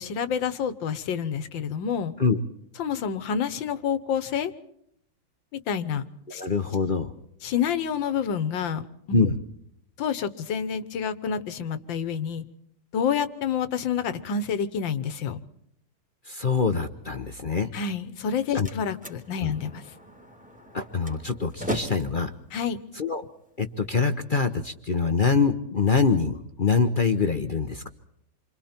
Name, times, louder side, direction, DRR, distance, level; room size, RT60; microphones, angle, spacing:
voice 1, 0.0-2.1 2.8-4.5 5.5-6.0 6.3-6.4 7.4-8.8 9.1-9.2 10.0-12.4 12.9-15.4 17.7-19.8 22.5-22.8, left 7 dB, 75° left, 13 dB, 1.8 m, -28 dB
voice 2, 6.3-7.1 9.1-9.4 16.3-17.7 18.5-18.7 19.4-19.5 20.7-22.3 23.0-23.2 23.6-27.9, left 5 dB, 40° left, 8 dB, 0.7 m, -24 dB
Slam, 18.1-24.0, equal, 5° right, 2.3 m, -39 dB
28.5 x 25.0 x 4.4 m, 0.74 s
omnidirectional pair, 2.1 m